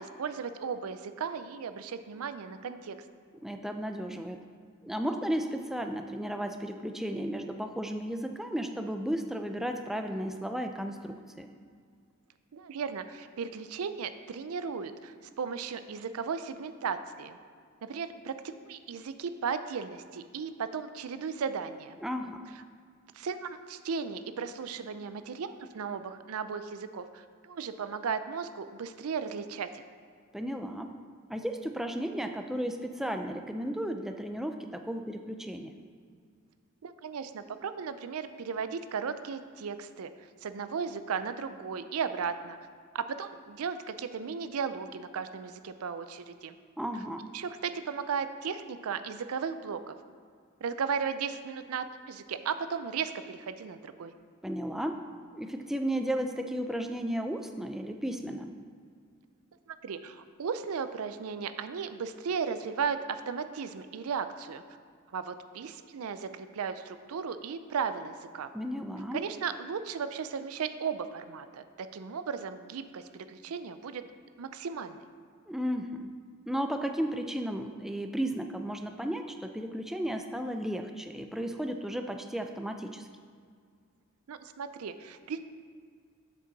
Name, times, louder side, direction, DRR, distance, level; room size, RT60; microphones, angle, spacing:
voice 1, 0.0-3.0 12.5-17.4 17.8-22.0 23.1-29.8 36.8-40.1 40.4-42.6 42.9-46.6 47.3-49.9 50.6-54.1 59.7-64.6 65.1-68.5 69.1-74.0 74.4-75.0 84.3-85.4, right 6 dB, 85° right, 11 dB, 0.4 m, -36 dB
voice 2, 3.4-4.4 4.8-11.5 22.0-22.5 30.3-31.0 31.3-35.8 46.8-47.2 54.4-55.0 55.3-58.5 68.5-69.2 75.5-76.1 76.5-83.1, equal, ahead, 5 dB, 0.3 m, -34 dB
7.5 x 6.7 x 4.0 m, 2.1 s
head